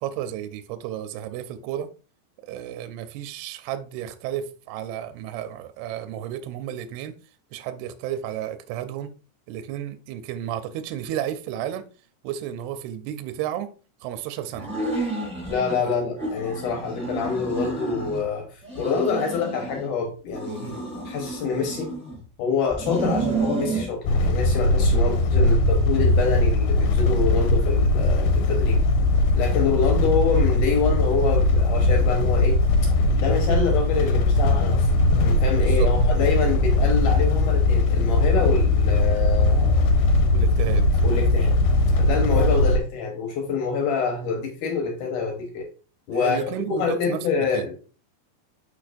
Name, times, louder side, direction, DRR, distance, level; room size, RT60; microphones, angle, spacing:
voice 1, 0.0-1.9 2.4-7.2 7.5-9.2 9.5-11.9 12.2-13.7 14.0-14.7 15.8-16.0 20.6-20.8 24.9-25.0 35.5-35.9 40.3-41.0 46.1-47.7, right 11 dB, 80° right, 2.4 m, -32 dB
sound 1, 14.5-15.8 16.2-18.2 18.6-19.9 20.3-22.2 22.7-23.9, right 2 dB, ahead, 2.5 m, -30 dB
voice 2, 15.5-21.9 22.4-28.8 29.3-32.6 33.2-34.9 35.2-39.9 41.0-41.6 42.0-45.7 46.1-47.8, left 5 dB, 70° left, 2.1 m, -26 dB
sound 2, 24.1-42.8, left 2 dB, 85° left, 2.7 m, -20 dB
6.2 x 6.1 x 2.5 m
omnidirectional pair, 4.8 m